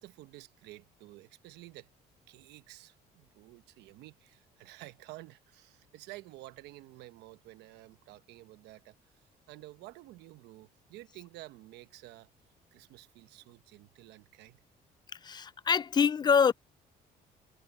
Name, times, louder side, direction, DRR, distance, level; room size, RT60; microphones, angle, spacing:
voice 1, 0.0-1.9 2.3-9.0 9.5-12.3 12.7-14.6, right 18 dB, 85° right, 1.0 m, -51 dB
voice 2, 15.2-16.5, left 6 dB, 25° left, 0.4 m, -25 dB
cardioid pair, 110°, 17 cm